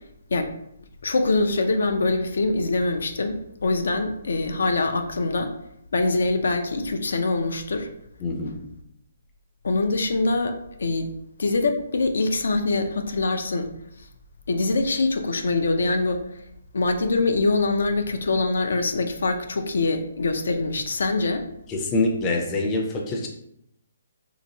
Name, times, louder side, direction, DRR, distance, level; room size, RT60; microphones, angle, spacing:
voice 1, 1.0-5.5 5.9-7.9 9.6-11.1 11.4-13.7 14.5-16.2 16.7-21.5, left 3 dB, 75° left, 6 dB, 0.4 m, -24 dB
voice 2, 8.2-8.6 21.7-23.3, left 2 dB, 15° left, 0 dB, 0.4 m, -25 dB
3.4 x 2.8 x 2.7 m, 0.76 s
hypercardioid pair, 165°, 0 cm